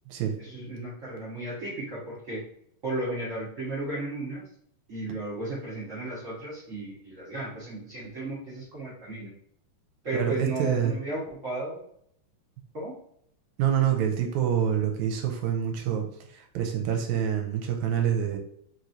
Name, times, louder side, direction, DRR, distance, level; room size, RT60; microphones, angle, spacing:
voice 1, 0.4-2.4 2.8-4.5 4.9-9.3 10.0-11.8 12.7-12.9, right 2 dB, 60° right, -7 dB, 0.8 m, -34 dB
voice 2, 10.1-10.9 13.6-18.4, right 9 dB, 80° right, 3 dB, 1.9 m, -26 dB
4.5 x 3.1 x 2.6 m, 0.68 s
omnidirectional pair, 3.5 m